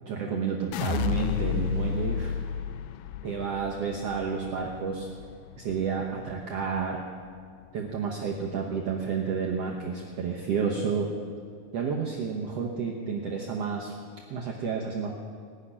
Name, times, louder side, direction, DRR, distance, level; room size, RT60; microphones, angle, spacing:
voice 1, 0.0-2.3 3.2-5.1 5.6-7.0 7.7-11.1 11.7-13.9 14.3-15.1, right 6 dB, 80° right, -1 dB, 1.4 m, -30 dB
sound 1, 0.7-6.9 7.3-7.9, left 9 dB, 80° left, 2.0 m, -33 dB
19.0 x 6.7 x 9.9 m, 2.2 s
omnidirectional pair, 4.4 m